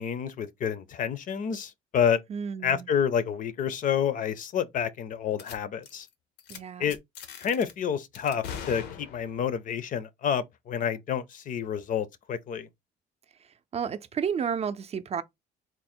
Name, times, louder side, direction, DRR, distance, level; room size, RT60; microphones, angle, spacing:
voice 1, 0.0-2.2 2.6-6.1 6.8-7.0 7.4-12.7, left 8 dB, 50° left, 0.6 m, -29 dB
voice 2, 2.3-2.9 6.5-6.8 13.7-15.2, right 7 dB, 40° right, 0.5 m, -31 dB
sound 1, 5.4-5.6 5.8-6.1 6.4-6.6 6.9-7.7 8.1-9.5, left 7 dB, 85° left, 0.8 m, -41 dB
3.8 x 2.1 x 4.2 m
cardioid pair, 110°, 17 cm